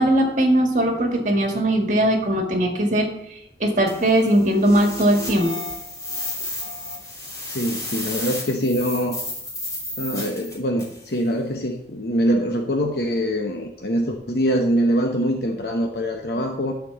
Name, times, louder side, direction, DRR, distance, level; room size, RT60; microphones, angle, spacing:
voice 1, 0.0-3.1 3.6-5.5, right 1 dB, 45° right, 2 dB, 1.9 m, -19 dB
sound 1, 3.9-11.1, left 1 dB, 20° left, 3.1 m, -32 dB
voice 2, 7.5-9.2 10.0-16.7, equal, 60° left, 2 dB, 0.9 m, -23 dB
12.0 x 4.6 x 6.9 m, 0.76 s
head